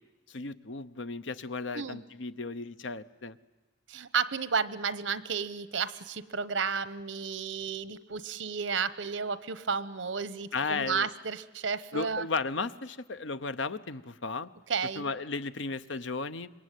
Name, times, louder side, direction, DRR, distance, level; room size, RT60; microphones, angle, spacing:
voice 1, 0.3-3.4 10.5-11.1 11.9-14.5 15.0-16.5, left 4 dB, 80° left, 12 dB, 0.9 m, -34 dB
voice 2, 3.9-12.3 14.7-15.1, right 6 dB, 85° right, 15 dB, 1.0 m, -32 dB
26.0 x 22.5 x 9.4 m, 1.1 s
head